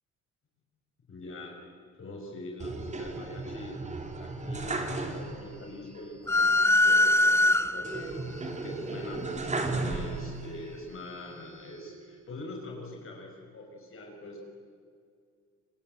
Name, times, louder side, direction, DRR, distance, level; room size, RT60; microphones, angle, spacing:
voice 1, 1.1-1.6 2.0-3.8 4.2-8.2 8.6-14.4, left 2 dB, 40° left, 1 dB, 5.8 m, -43 dB
sound 1, 2.6-5.6 5.9-6.0 7.8-10.6 11.1-11.9, right 3 dB, 20° right, 3.2 m, -35 dB
sound 2, 6.3-8.1, left 2 dB, 10° left, 0.7 m, -22 dB
27.0 x 25.0 x 8.0 m, 2.2 s
cardioid pair, 125°, 31 cm